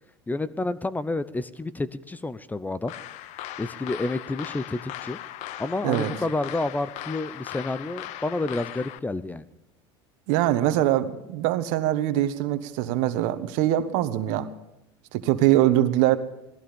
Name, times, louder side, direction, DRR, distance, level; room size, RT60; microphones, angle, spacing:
voice 1, 0.3-2.9 3.6-5.2 5.6-9.4, left 2 dB, 10° left, 16 dB, 0.8 m, -29 dB
sound 1, 2.9-9.0, left 13 dB, 60° left, 0.9 m, -38 dB
voice 2, 10.3-14.5 15.1-16.2, right 13 dB, 65° right, 11 dB, 1.4 m, -23 dB
18.5 x 14.5 x 5.4 m, 0.90 s
supercardioid pair, 95°, 14 cm